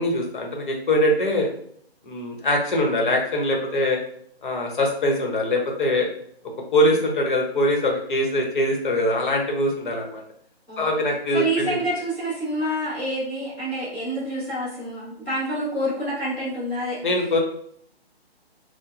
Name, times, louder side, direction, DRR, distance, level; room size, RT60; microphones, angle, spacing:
voice 1, 0.0-1.5 2.0-4.0 4.4-6.1 6.7-10.2 10.8-11.8 17.0-17.4, left 1 dB, 50° left, 1 dB, 0.9 m, -22 dB
voice 2, 11.3-17.0, right 1 dB, 5° left, -13 dB, 0.6 m, -27 dB
4.6 x 2.1 x 2.5 m, 0.66 s
hypercardioid pair, 160°, 32 cm